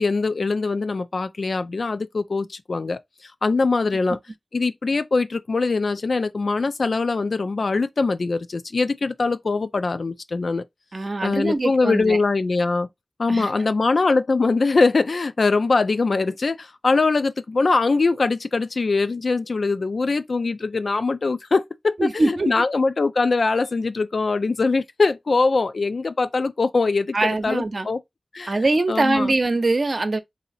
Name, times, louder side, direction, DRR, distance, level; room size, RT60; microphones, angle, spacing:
voice 1, 0.0-4.2 4.5-10.6 11.2-12.9 13.2-28.0 28.3-28.5 28.9-29.3, left 3 dB, 70° left, 0.4 m, -22 dB
voice 2, 10.9-12.2 13.3-13.5 22.0-22.6 27.1-27.9 28.5-30.2, right 2 dB, 55° right, 0.7 m, -22 dB
4.0 x 2.7 x 2.6 m
wide cardioid pair, 60°, 0 cm